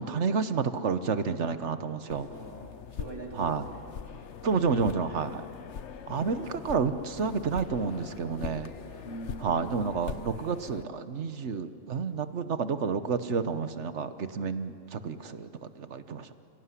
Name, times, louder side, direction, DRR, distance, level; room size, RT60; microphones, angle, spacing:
voice 1, 0.0-2.3 3.4-3.6 4.4-5.4 6.1-8.7 9.4-16.3, right 5 dB, 65° right, 11 dB, 1.4 m, -30 dB
sound 1, 2.1-10.8, left 7 dB, 70° left, 1.1 m, -42 dB
voice 2, 2.2-3.8 9.0-9.9, right 2 dB, 20° right, -1 dB, 3.8 m, -43 dB
29.5 x 17.5 x 9.8 m, 2.4 s
omnidirectional pair, 1.3 m